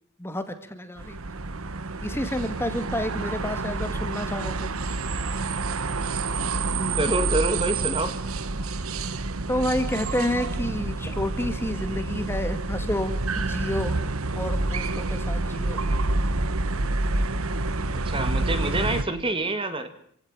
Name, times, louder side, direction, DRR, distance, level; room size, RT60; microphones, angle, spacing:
voice 1, 0.2-1.2 2.0-4.7 9.5-14.0 14.4-15.8, left 1 dB, 10° left, 9 dB, 2.0 m, -30 dB
sound 1, 1.0-19.0, right 3 dB, 80° right, 1.2 m, -28 dB
voice 2, 6.8-8.1 17.9-19.9, right 2 dB, 25° right, 9 dB, 2.0 m, -27 dB
27.0 x 17.0 x 9.0 m, 0.66 s
head